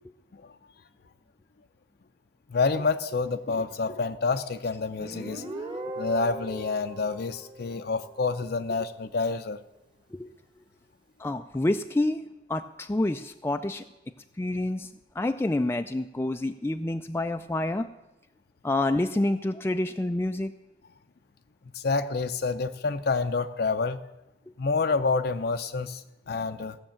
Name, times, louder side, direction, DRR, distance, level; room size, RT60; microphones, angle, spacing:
voice 1, 2.5-5.4 6.0-9.6 21.7-24.0 24.6-26.8, left 4 dB, 60° left, 8 dB, 0.6 m, -28 dB
Guitar, 5.0-8.5, right 1 dB, 30° right, 1.4 m, -39 dB
voice 2, 11.2-12.2 12.5-13.8 14.4-14.9 15.2-17.9 18.6-20.5, left 2 dB, 15° left, 7 dB, 0.4 m, -28 dB
16.0 x 6.6 x 8.6 m, 0.98 s
head